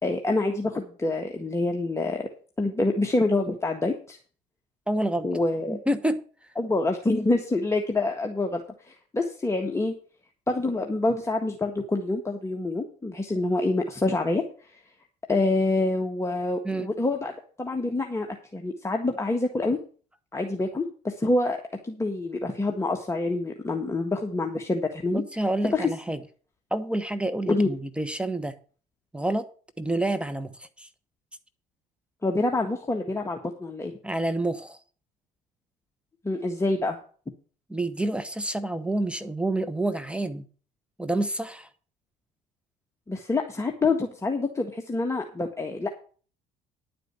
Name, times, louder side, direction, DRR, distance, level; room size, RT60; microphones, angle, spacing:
voice 1, 0.0-2.3 2.6-4.2 5.2-5.8 6.6-9.9 10.5-14.4 15.3-17.3 17.6-19.8 20.3-25.2 25.7-25.9 27.5-27.7 32.2-33.9 36.2-37.0 43.1-45.9, left 2 dB, 15° left, 2 dB, 1.7 m, -26 dB
voice 2, 4.9-5.3 5.7-6.2 16.6-16.9 25.1-26.2 26.7-28.5 29.1-29.5 29.8-30.9 34.0-34.8 37.7-40.4 41.0-41.7, right 1 dB, 5° right, 11 dB, 1.1 m, -28 dB
11.0 x 5.1 x 8.1 m, 0.40 s
supercardioid pair, 75°, 17 cm